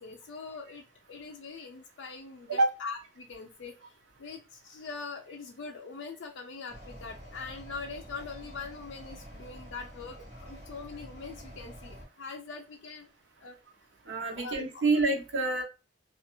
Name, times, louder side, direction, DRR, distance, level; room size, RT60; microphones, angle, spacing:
voice 1, 0.0-13.1 13.4-13.6 14.3-14.6, left 4 dB, 75° left, 2 dB, 0.4 m, -43 dB
sound 1, 6.7-12.1, equal, 35° right, 0.9 m, -47 dB
voice 2, 14.1-15.6, right 3 dB, 80° right, 2 dB, 0.6 m, -27 dB
2.4 x 2.3 x 2.8 m, 0.31 s
head